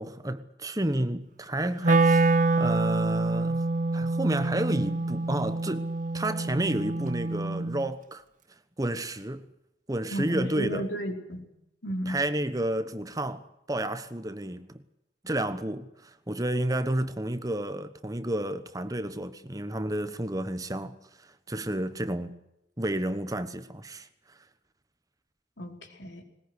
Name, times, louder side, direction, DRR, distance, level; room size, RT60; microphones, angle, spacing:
voice 1, 0.0-2.3 2.6-3.7 3.9-8.2 8.8-9.5 9.9-10.9 12.1-14.8 15.2-22.4 22.8-24.4, right 1 dB, 20° right, 1.1 m, -31 dB
Wind instrument woodwind instrument, 1.8-7.9, right 3 dB, 40° right, 0.8 m, -26 dB
voice 2, 10.1-11.4 11.8-12.2 25.6-26.2, equal, 70° left, 5.0 m, -33 dB
20.5 x 20.5 x 8.1 m
head